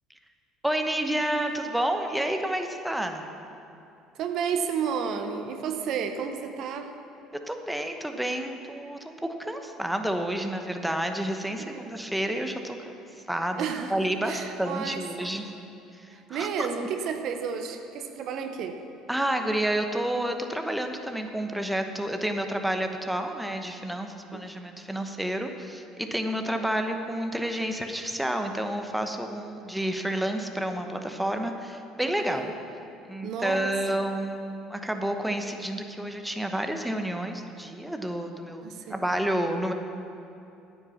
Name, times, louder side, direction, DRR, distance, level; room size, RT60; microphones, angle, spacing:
voice 1, 0.6-3.3 7.5-12.9 13.3-15.4 15.9-16.7 19.1-32.5 33.1-39.7, right 1 dB, 5° right, 5 dB, 1.0 m, -30 dB
voice 2, 4.2-6.9 11.6-11.9 13.5-15.4 16.1-18.8 24.3-24.5 32.2-32.4 33.2-34.0 38.6-39.0, right 6 dB, 60° right, 6 dB, 0.8 m, -32 dB
9.6 x 8.2 x 7.1 m, 2.9 s
hypercardioid pair, 65°, 0 cm